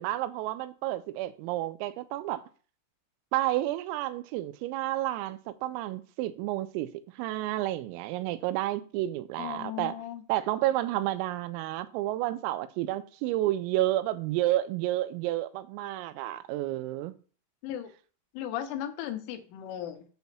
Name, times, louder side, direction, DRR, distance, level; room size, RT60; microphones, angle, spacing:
voice 1, 0.0-2.4 3.3-6.9 7.2-10.0 10.3-17.2, right 15 dB, 85° right, 3.2 m, -30 dB
voice 2, 9.4-10.2 17.6-17.9 18.3-20.0, left 11 dB, 80° left, 3.1 m, -36 dB
8.0 x 4.2 x 6.7 m
omnidirectional pair, 6.0 m